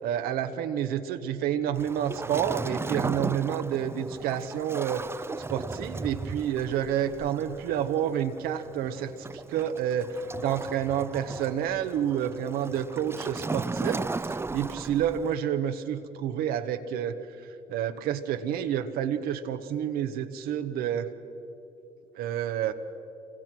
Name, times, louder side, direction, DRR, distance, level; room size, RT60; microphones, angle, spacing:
voice 1, 0.0-5.0 5.5-21.1 22.1-22.7, right 9 dB, 85° right, 9 dB, 1.1 m, -29 dB
Waves surf, 1.7-15.4, right 3 dB, 15° right, 0.5 m, -36 dB
27.0 x 23.0 x 6.1 m, 2.9 s
supercardioid pair, 70°, 15 cm